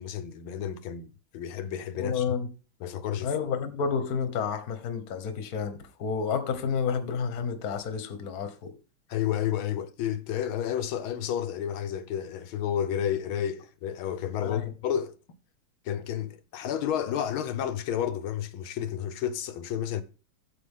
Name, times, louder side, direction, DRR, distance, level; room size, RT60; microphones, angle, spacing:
voice 1, 0.0-2.4 2.8-3.3 9.1-15.1 15.8-20.0, left 10 dB, 80° left, 1.7 m, -31 dB
voice 2, 2.0-2.5 3.2-8.7 14.4-14.7, left 6 dB, 50° left, 1.5 m, -30 dB
8.4 x 7.7 x 3.6 m
omnidirectional pair, 2.3 m